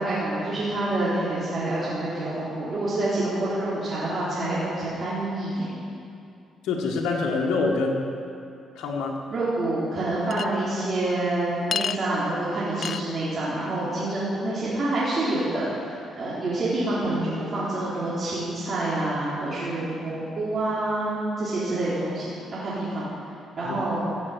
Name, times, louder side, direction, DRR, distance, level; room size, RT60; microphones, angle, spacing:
voice 1, 0.0-5.7 9.3-23.0 23.6-24.0, right 2 dB, 45° right, -10 dB, 3.9 m, -27 dB
voice 2, 6.6-8.1 8.7-9.2 23.6-23.8, left 3 dB, 90° left, -1 dB, 1.6 m, -25 dB
Chink clink, 10.3-10.5 11.7-12.0 12.8-13.0, left 7 dB, 55° left, 0.3 m, -28 dB
15.5 x 7.4 x 8.1 m, 2.5 s
cardioid pair, 90°, 0 cm